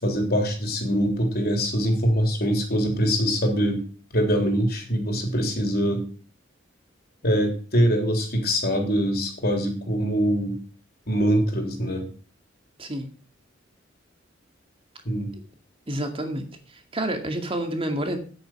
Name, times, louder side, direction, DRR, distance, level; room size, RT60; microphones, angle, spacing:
voice 1, 0.0-3.8 4.1-6.1 7.2-10.6 11.1-12.1 15.1-15.3, equal, 55° left, 3 dB, 3.5 m, -23 dB
voice 2, 12.8-13.1 15.9-18.2, right 1 dB, 30° right, 5 dB, 2.2 m, -29 dB
9.9 x 8.9 x 6.0 m, 0.39 s
head